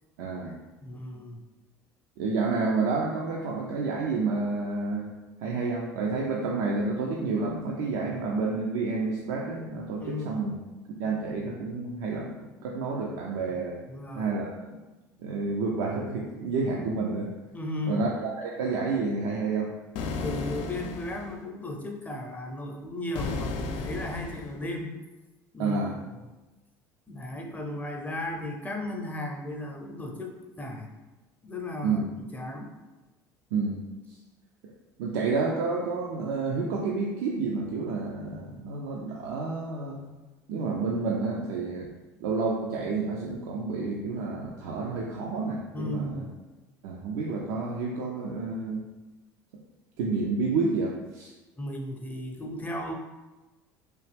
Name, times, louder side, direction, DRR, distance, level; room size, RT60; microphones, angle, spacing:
voice 1, 0.2-0.6 2.2-10.5 11.0-13.8 14.2-14.6 15.2-17.3 17.9-19.7 25.6-26.0 31.8-32.0 33.5-33.8 35.0-40.1 40.5-41.9 42.2-46.2 46.8-48.8 50.0-51.3, right 4 dB, 75° right, -2 dB, 0.4 m, -29 dB
voice 2, 0.8-1.4 10.0-10.6 13.9-14.3 17.5-18.0 20.1-24.9 25.5-26.0 27.1-30.9 31.4-32.7 45.7-46.3 51.6-52.9, left 1 dB, 15° left, 2 dB, 0.6 m, -35 dB
sound 1, 20.0-21.4 23.1-24.6, left 4 dB, 65° left, 0.4 m, -34 dB
3.0 x 2.3 x 3.2 m, 1.2 s
hypercardioid pair, 70°, 10 cm